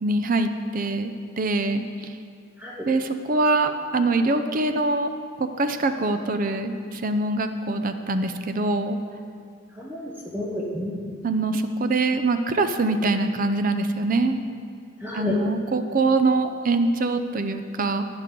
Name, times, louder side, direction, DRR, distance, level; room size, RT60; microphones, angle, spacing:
voice 1, 0.0-2.1 2.9-5.1 5.4-9.0 11.2-14.4 15.1-18.0, right 2 dB, 40° right, 9 dB, 0.5 m, -24 dB
voice 2, 9.8-11.1 15.0-15.4, left 1 dB, 10° right, -3 dB, 0.9 m, -31 dB
11.5 x 9.6 x 3.8 m, 2.2 s
head